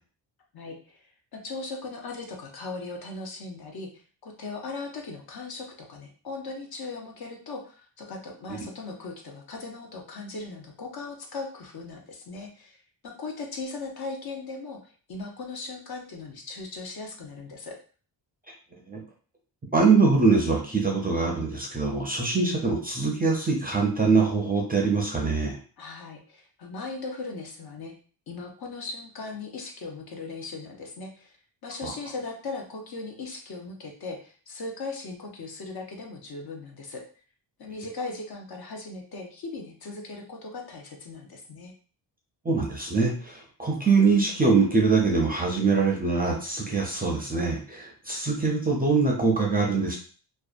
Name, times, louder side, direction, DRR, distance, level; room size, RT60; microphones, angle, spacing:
voice 1, 0.5-1.0 1.3-17.8 25.8-27.9 28.3-31.3 31.6-37.0 37.6-41.7, left 3 dB, 55° left, 1 dB, 0.7 m, -38 dB
voice 2, 19.7-25.6 31.8-31.9 42.4-49.9, right 4 dB, 20° right, -1 dB, 0.4 m, -23 dB
2.7 x 2.2 x 2.4 m, 0.41 s
wide cardioid pair, 145°, 44 cm